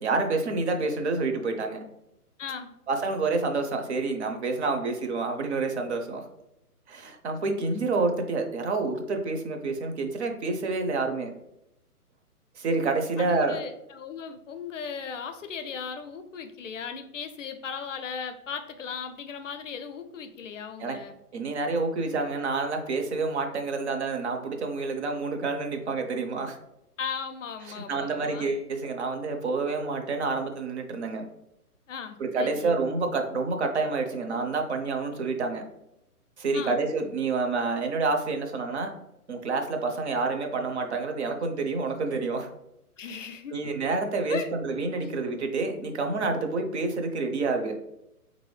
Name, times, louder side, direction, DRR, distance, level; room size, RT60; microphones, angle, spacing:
voice 1, 0.0-1.8 2.9-6.3 6.9-11.3 12.6-13.6 20.8-21.0 21.3-26.6 27.7-31.3 32.2-35.6 36.4-38.9 39.3-42.5 43.5-47.8, right 3 dB, 45° right, 5 dB, 0.6 m, -28 dB
voice 2, 2.4-2.7 13.2-21.2 27.0-28.5 31.9-32.8 36.5-36.8 43.0-43.5 44.3-44.5, left 6 dB, 55° left, 8 dB, 0.5 m, -37 dB
3.8 x 2.6 x 3.1 m, 0.86 s
hypercardioid pair, 150°, 46 cm